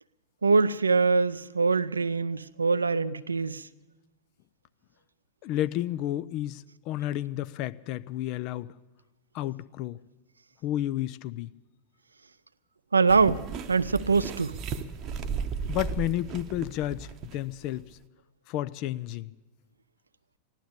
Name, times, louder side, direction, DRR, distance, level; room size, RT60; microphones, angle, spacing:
voice 1, 0.4-3.7 12.9-14.6, right 4 dB, 75° right, 0.4 m, -24 dB
voice 2, 5.4-8.7 9.3-10.0 10.6-11.5 15.7-18.0 18.5-19.3, left 13 dB, 40° left, 0.4 m, -31 dB
sound 1, 13.1-17.6 17.9-18.0, right 6 dB, 35° right, 0.8 m, -35 dB
15.0 x 11.5 x 8.3 m
figure-of-eight pair, 90°, 0 cm